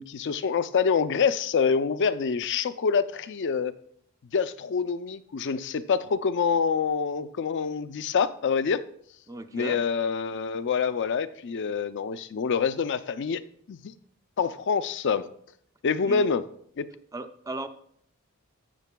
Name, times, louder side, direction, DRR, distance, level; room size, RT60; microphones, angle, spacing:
voice 1, 0.0-3.7 4.3-8.8 9.5-13.4 13.7-13.9 14.4-15.3 15.8-16.4 16.8-16.9, left 6 dB, 55° left, 13 dB, 0.4 m, -26 dB
voice 2, 9.3-9.8 16.1-16.3 17.1-17.7, right 2 dB, 15° right, 9 dB, 0.5 m, -36 dB
12.5 x 8.2 x 2.2 m, 0.66 s
head